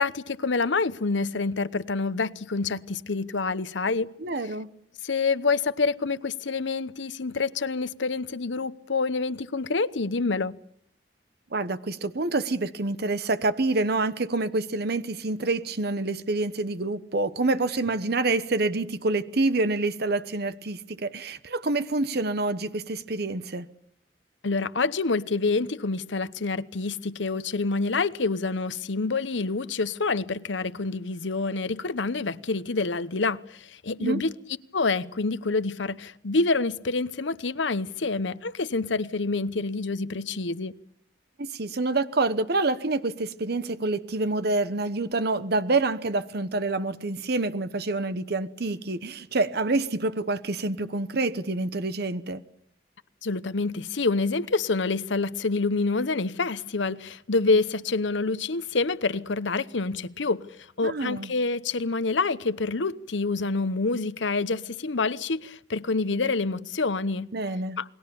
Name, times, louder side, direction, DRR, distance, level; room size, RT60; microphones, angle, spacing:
voice 1, 0.0-4.1 5.0-10.5 24.4-34.3 34.7-40.8 53.2-60.5 60.8-67.3 67.8-67.9, left 3 dB, 85° left, 0.9 m, -27 dB
voice 2, 4.2-4.7 11.5-23.7 34.0-34.2 41.4-52.4 60.8-61.3 67.3-67.8, right 2 dB, 60° right, 1.0 m, -27 dB
28.5 x 20.5 x 7.0 m
head